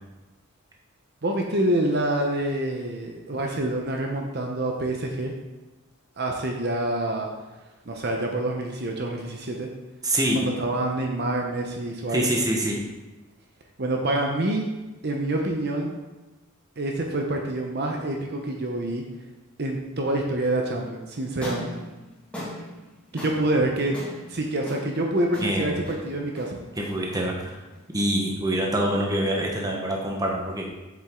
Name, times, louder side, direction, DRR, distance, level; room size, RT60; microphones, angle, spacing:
voice 1, 1.2-5.3 6.2-7.3 7.9-9.7 10.3-12.3 13.8-14.7 15.0-16.0 16.8-19.0 19.6-21.8 23.1-24.0 24.3-26.6, right 1 dB, 50° right, 1 dB, 0.8 m, -27 dB
voice 2, 10.0-10.4 12.1-12.8 25.4-25.8 26.8-27.6 27.9-30.7, right 1 dB, 15° right, 0 dB, 1.1 m, -25 dB
sound 1, 21.3-29.6, equal, 5° left, 2.0 m, -41 dB
7.4 x 7.3 x 3.8 m, 1.1 s
head